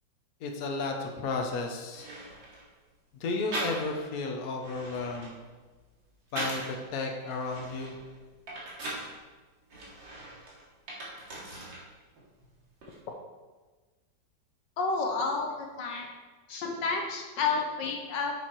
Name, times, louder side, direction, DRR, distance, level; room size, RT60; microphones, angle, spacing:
voice 1, 0.4-2.1 3.2-5.4 6.3-8.0, left 3 dB, 55° left, 2 dB, 1.4 m, -33 dB
sound 1, 1.9-2.7 3.5-4.1 4.5-6.8 7.3-9.1 9.7-11.9 12.2-12.9, right 1 dB, 80° right, 2.9 m, -40 dB
voice 2, 14.8-16.1 16.5-18.3, left 4 dB, 70° left, 2 dB, 1.5 m, -30 dB
7.5 x 7.0 x 4.7 m, 1.3 s
omnidirectional pair, 2.1 m